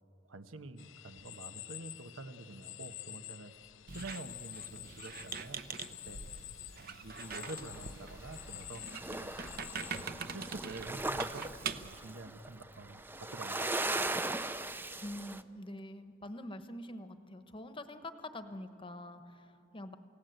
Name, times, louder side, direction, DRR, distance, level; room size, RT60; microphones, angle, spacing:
voice 1, 0.3-3.5 3.9-5.6 5.9-6.5 6.8-8.8 9.2-9.3 9.9-11.5 11.8-13.0 13.3-14.1, right 2 dB, 90° right, 9 dB, 1.1 m, -47 dB
sound 1, 0.8-10.0, left 15 dB, 70° left, 0.5 m, -49 dB
Squeak, 3.9-12.0, right 5 dB, 45° right, 0.8 m, -44 dB
sound 2, 7.2-8.6 8.9-15.4, right 2 dB, 10° right, 0.5 m, -39 dB
voice 2, 15.0-20.0, left 1 dB, 25° left, 9 dB, 1.0 m, -45 dB
28.5 x 17.0 x 8.0 m, 2.7 s
head